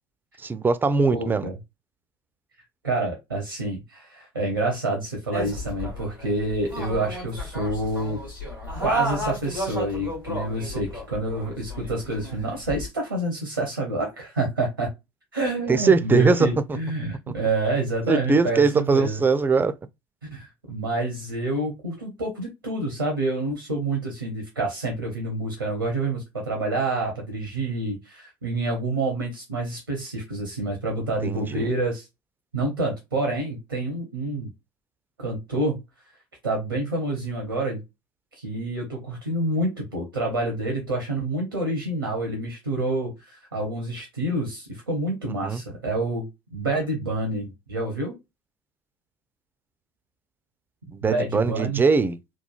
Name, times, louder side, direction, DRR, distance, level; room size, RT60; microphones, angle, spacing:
voice 1, 0.4-1.5 15.7-16.8 18.1-19.8 31.2-31.7 45.4-45.6 50.9-52.2, right 4 dB, 20° right, 0.3 m, -21 dB
voice 2, 1.1-1.5 2.8-8.2 8.8-14.9 15.3-19.2 20.3-32.1 32.5-34.5 35.2-35.7 36.4-37.8 38.4-48.1 51.0-51.8, right 2 dB, 90° right, 0.6 m, -28 dB
sound 1, 5.3-12.9, equal, 90° left, 1.3 m, -32 dB
3.0 x 2.2 x 2.3 m
figure-of-eight pair, 60°, 11 cm